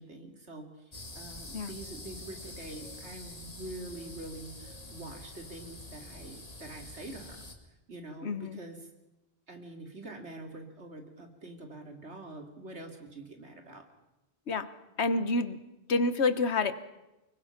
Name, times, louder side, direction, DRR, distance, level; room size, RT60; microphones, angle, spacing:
voice 1, 0.0-7.4 7.9-8.9 9.5-13.9, right 2 dB, 80° right, 4 dB, 3.1 m, -45 dB
sound 1, 0.9-7.5, left 2 dB, 35° left, 2.3 m, -46 dB
voice 2, 8.2-8.6 14.5-14.7 15.0-15.6 15.9-16.7, left 3 dB, 75° left, 13 dB, 1.5 m, -28 dB
25.0 x 22.5 x 5.9 m, 0.99 s
omnidirectional pair, 1.1 m